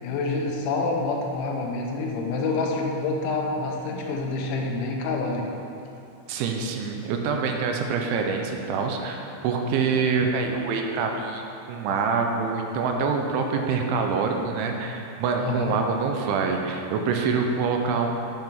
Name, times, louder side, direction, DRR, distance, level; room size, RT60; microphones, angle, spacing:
voice 1, 0.0-5.5 15.4-15.7, left 3 dB, 80° left, 0 dB, 3.2 m, -27 dB
voice 2, 6.3-18.1, right 5 dB, 80° right, 3 dB, 2.9 m, -26 dB
9.0 x 5.5 x 5.9 m, 2.7 s
omnidirectional pair, 5.7 m